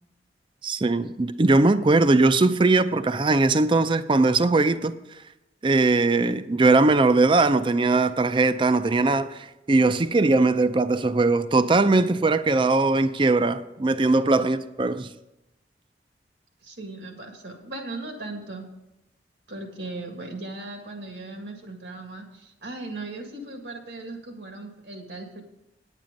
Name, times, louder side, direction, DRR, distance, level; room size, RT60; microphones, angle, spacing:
voice 1, 0.6-4.9 5.6-15.1, right 3 dB, 30° right, 0.4 m, -20 dB
voice 2, 16.6-18.7 19.5-25.4, right 2 dB, 80° right, 1.9 m, -38 dB
9.6 x 9.1 x 5.2 m
head